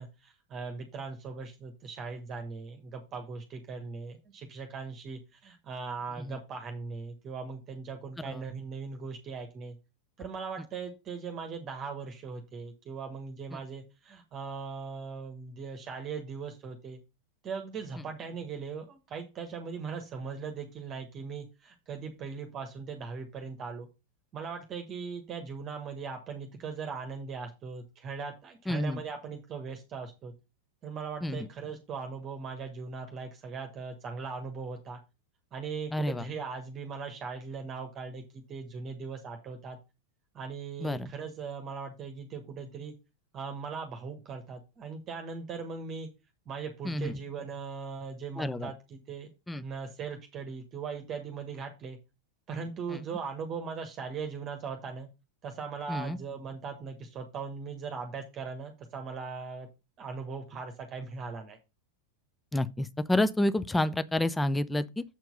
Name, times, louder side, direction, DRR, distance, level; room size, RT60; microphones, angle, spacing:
voice 1, 0.0-9.8 10.2-17.0 17.4-23.9 24.3-30.3 30.8-35.0 35.5-39.8 40.3-42.9 43.3-46.1 46.5-49.3 49.6-52.0 52.5-55.1 55.4-59.7 60.0-61.6, right 5 dB, 30° right, 1.3 m, -39 dB
voice 2, 28.7-29.0 31.2-31.5 35.9-36.3 40.8-41.1 46.8-47.2 48.4-48.7 49.5-49.6 52.9-53.0 55.9-56.2 62.5-65.0, left 1 dB, 5° left, 0.6 m, -29 dB
7.7 x 4.5 x 5.3 m
figure-of-eight pair, 90°, 0 cm